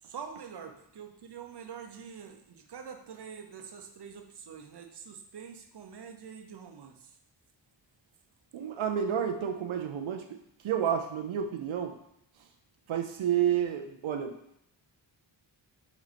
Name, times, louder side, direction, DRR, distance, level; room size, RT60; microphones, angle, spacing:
voice 1, 0.0-7.1 13.9-14.0, right 7 dB, 60° right, 5 dB, 0.8 m, -45 dB
voice 2, 8.5-11.9 12.4-12.5 12.9-14.3, right 9 dB, 85° right, 4 dB, 0.6 m, -30 dB
5.9 x 4.2 x 4.2 m, 0.76 s
wide cardioid pair, 135°, 46 cm